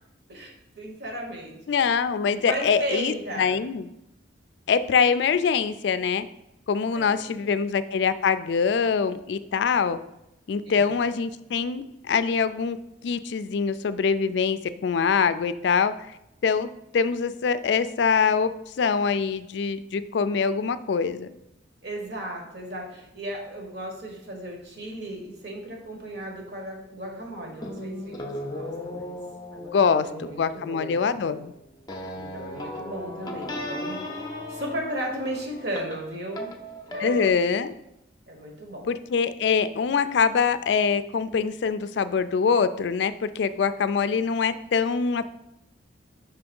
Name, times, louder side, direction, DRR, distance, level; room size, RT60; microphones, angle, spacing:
voice 1, 0.3-1.6 2.4-3.6 6.9-7.5 10.7-11.0 21.8-29.2 29.5-30.9 32.1-36.5 36.9-37.2 38.3-38.9, right 1 dB, 60° right, 1 dB, 1.5 m, -35 dB
voice 2, 1.7-3.9 4.7-6.3 6.7-10.0 10.5-12.8 13.0-15.9 16.4-18.5 18.8-21.3 29.7-31.5 37.0-37.7 38.9-45.3, left 6 dB, 65° left, 13 dB, 0.3 m, -24 dB
sound 1, 27.6-37.3, left 1 dB, 20° left, 0.6 m, -37 dB
5.7 x 3.4 x 5.3 m, 0.84 s
head